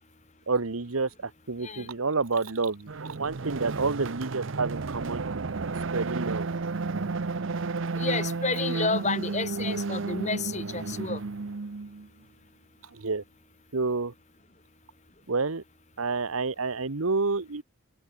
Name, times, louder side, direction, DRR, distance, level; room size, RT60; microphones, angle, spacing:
voice 1, 0.5-5.5 5.9-6.5 9.7-9.8 12.9-13.2 13.7-14.1 15.3-15.6 16.0-17.6, right 4 dB, 85° right, 1.2 m, -29 dB
sound 1, 2.9-12.1, right 4 dB, 65° right, 0.7 m, -32 dB
voice 2, 8.0-11.2, left 3 dB, 35° left, 3.9 m, -30 dB
open air
head